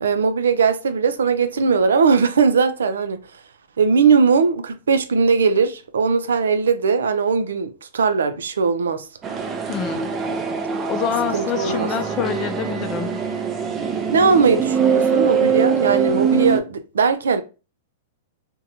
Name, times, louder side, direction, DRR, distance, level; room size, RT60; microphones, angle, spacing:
voice 1, 0.0-3.2 3.8-9.1 11.3-11.9 14.1-17.4, right 5 dB, 90° right, 0.3 m, -19 dB
sound 1, 9.2-16.6, right 6 dB, 25° right, 0.4 m, -23 dB
voice 2, 9.7-10.1 10.9-13.2, left 8 dB, 35° left, 0.5 m, -26 dB
2.6 x 2.1 x 2.7 m
hypercardioid pair, 125°, 0 cm